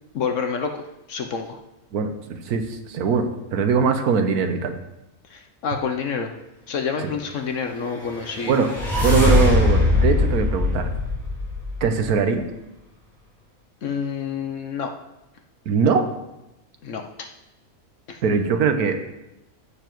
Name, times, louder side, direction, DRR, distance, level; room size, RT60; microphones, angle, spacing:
voice 1, 0.1-1.6 5.3-6.3 6.7-8.6 13.8-14.9 16.8-17.3 18.1-18.2, left 6 dB, 65° left, 5 dB, 1.0 m, -28 dB
voice 2, 1.9-4.7 8.5-8.7 9.0-10.9 11.8-12.4 15.7-16.1 18.2-19.2, right 5 dB, 90° right, 7 dB, 1.4 m, -21 dB
sound 1, 7.9-12.1, left 2 dB, ahead, 3.6 m, -21 dB
15.0 x 6.9 x 3.0 m, 0.92 s
omnidirectional pair, 1.5 m